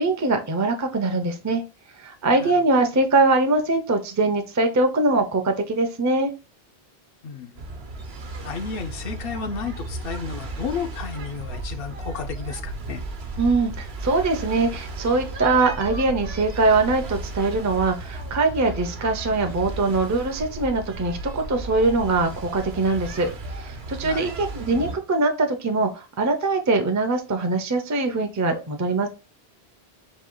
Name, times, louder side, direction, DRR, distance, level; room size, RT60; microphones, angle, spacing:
voice 1, 0.0-1.6 2.0-6.3 13.4-29.1, right 3 dB, 25° right, 0.5 m, -22 dB
voice 2, 7.2-7.6 8.4-13.0 24.0-24.3, left 6 dB, 65° left, 0.8 m, -32 dB
sound 1, 7.6-25.0, right 2 dB, 80° right, 1.1 m, -34 dB
4.2 x 2.7 x 3.7 m
omnidirectional pair, 1.1 m